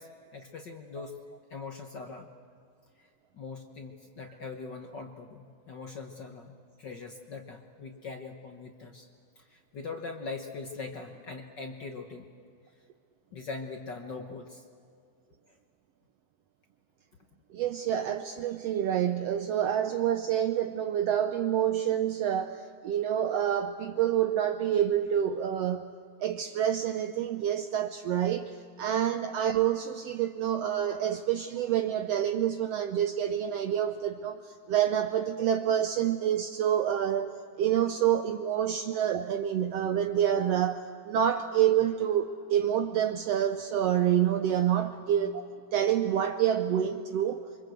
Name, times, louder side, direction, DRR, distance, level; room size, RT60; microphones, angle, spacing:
voice 1, 0.0-2.3 3.0-9.1 9.3-12.3 13.3-14.6 15.5-15.6, left 4 dB, 50° left, 4 dB, 1.3 m, -42 dB
voice 2, 17.5-25.9 26.2-45.4 45.7-47.4, right 10 dB, 70° right, 8 dB, 1.6 m, -27 dB
27.5 x 24.0 x 7.9 m, 2.3 s
omnidirectional pair, 3.4 m